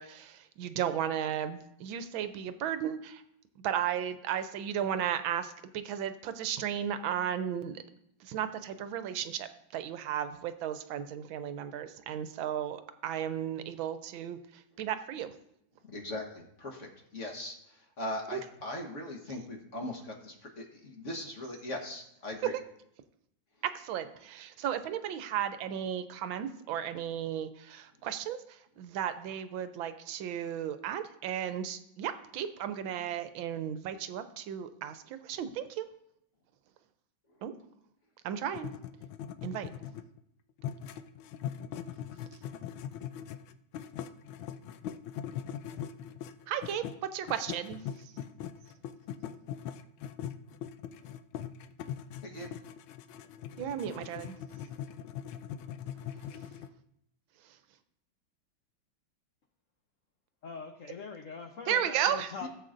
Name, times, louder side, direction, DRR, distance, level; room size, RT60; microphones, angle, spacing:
voice 1, 0.0-3.2 3.6-7.8 8.2-15.3 18.3-18.4 22.4-22.5 23.6-35.8 37.4-37.5 38.2-38.7 39.4-39.7 46.5-46.8 47.1-47.8 53.6-54.4 61.7-62.3, right 9 dB, 80° right, 11 dB, 1.4 m, -34 dB
voice 2, 15.8-22.5 52.2-52.5 62.4-62.5, left 1 dB, 40° left, 1 dB, 1.4 m, -40 dB
sound 1, 38.5-40.2 40.6-47.0 47.3-56.7, left 9 dB, 85° left, 1.4 m, -41 dB
voice 3, 60.4-62.5, left 5 dB, 70° left, 5 dB, 0.7 m, -42 dB
16.0 x 7.7 x 2.5 m, 0.76 s
omnidirectional pair, 2.2 m